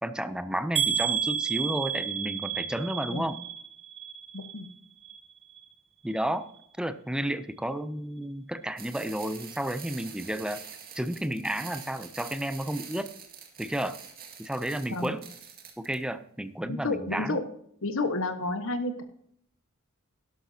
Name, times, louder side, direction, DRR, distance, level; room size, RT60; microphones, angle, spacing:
voice 1, 0.0-3.4 6.0-6.5 6.8-10.6 10.9-13.1 13.6-14.0 14.4-15.3 15.8-17.4, right 1 dB, 5° right, 11 dB, 0.5 m, -32 dB
sound 1, 0.8-4.7 5.0-5.6 6.1-6.2 6.6-6.7, right 8 dB, 30° right, 1.1 m, -31 dB
voice 2, 4.3-4.7 14.9-15.1 16.6-17.4 17.8-19.0, left 2 dB, 65° left, 8 dB, 1.4 m, -30 dB
sound 2, 8.8-15.9, right 7 dB, 45° right, 2.0 m, -46 dB
12.0 x 11.5 x 2.8 m, 0.68 s
head